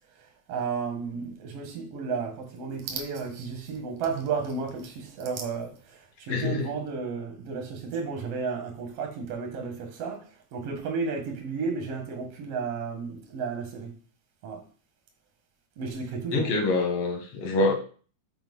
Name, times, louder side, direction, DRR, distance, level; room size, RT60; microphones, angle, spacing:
voice 1, 0.5-10.2 10.5-13.9 14.4-14.6 15.8-16.5, right 5 dB, 50° right, 2.2 m, -33 dB
voice 2, 6.3-6.7 16.3-17.7, left 2 dB, 60° left, 1.6 m, -25 dB
5.8 x 4.4 x 5.5 m
omnidirectional pair, 4.2 m